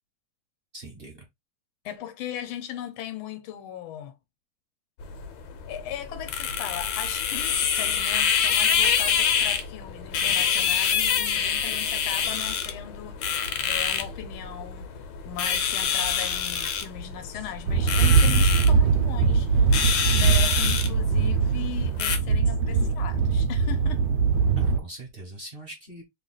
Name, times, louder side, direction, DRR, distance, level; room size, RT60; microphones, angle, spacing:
voice 1, 0.7-1.3 10.8-10.9 17.3-17.5 24.6-26.0, right 1 dB, 45° right, 0.7 m, -42 dB
voice 2, 1.8-4.1 5.7-13.2 13.7-14.9 15.2-24.1, left 10 dB, 90° left, 1.5 m, -38 dB
sound 1, 5.0-22.2, left 7 dB, 70° left, 1.4 m, -26 dB
sound 2, 17.7-24.8, right 5 dB, 70° right, 1.1 m, -21 dB
3.4 x 2.4 x 3.7 m
omnidirectional pair, 2.2 m